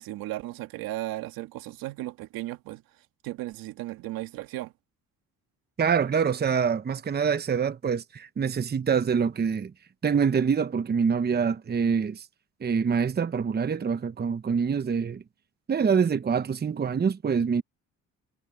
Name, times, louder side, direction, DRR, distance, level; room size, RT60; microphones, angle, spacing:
voice 1, 0.0-2.8 3.2-4.7, right 16 dB, 85° right, 1.8 m, -35 dB
voice 2, 5.8-9.7 10.0-12.3 12.6-15.2 15.7-17.6, right 6 dB, 30° right, 0.9 m, -25 dB
cardioid pair, 80°, 34 cm